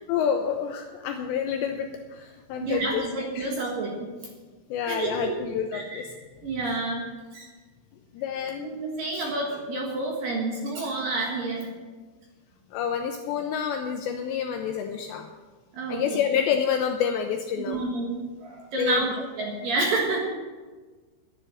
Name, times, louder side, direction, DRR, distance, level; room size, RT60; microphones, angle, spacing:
voice 1, 0.1-3.1 3.4-3.5 4.7-6.1 8.1-8.7 12.7-15.3 15.9-17.8 18.8-19.1, left 8 dB, 85° left, 5 dB, 2.5 m, -28 dB
voice 2, 2.6-4.1 4.9-5.4 5.7-6.1 6.4-7.1 7.3-7.5 8.6-11.7 15.7-16.0 17.7-20.3, right 3 dB, 60° right, -1 dB, 2.6 m, -29 dB
11.0 x 11.0 x 6.3 m, 1.4 s
omnidirectional pair, 5.8 m